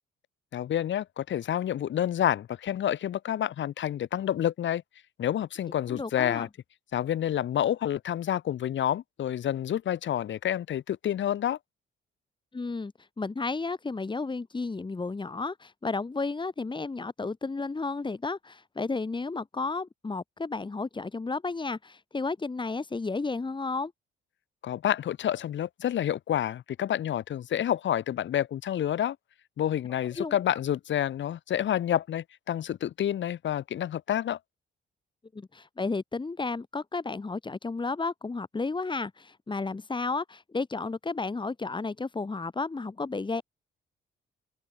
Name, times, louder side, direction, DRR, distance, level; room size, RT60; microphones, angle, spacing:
voice 1, 0.5-4.8 5.2-6.5 6.9-11.6 24.6-29.2 29.6-34.4, left 11 dB, 70° left, 6.8 m, -28 dB
voice 2, 5.9-6.5 12.5-23.9 30.2-30.4 35.3-43.4, left 3 dB, 25° left, 4.0 m, -32 dB
open air
cardioid pair, 90°, 20 cm